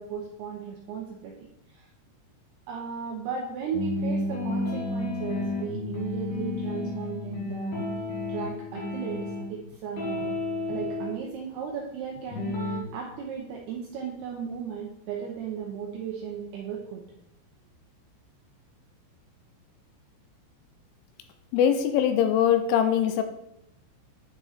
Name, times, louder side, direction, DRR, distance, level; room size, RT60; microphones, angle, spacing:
voice 1, 0.0-1.5 1.7-1.9 2.7-7.9 8.3-9.2 9.5-10.4 10.7-17.0, right 7 dB, 85° right, -1 dB, 2.3 m, -36 dB
sound 1, 3.7-9.6 10.0-11.1 12.3-12.8, left 2 dB, 60° left, 2.9 m, -31 dB
voice 2, 21.5-23.2, left 9 dB, 85° left, 8 dB, 3.1 m, -22 dB
9.5 x 5.0 x 4.2 m, 0.79 s
omnidirectional pair, 5.8 m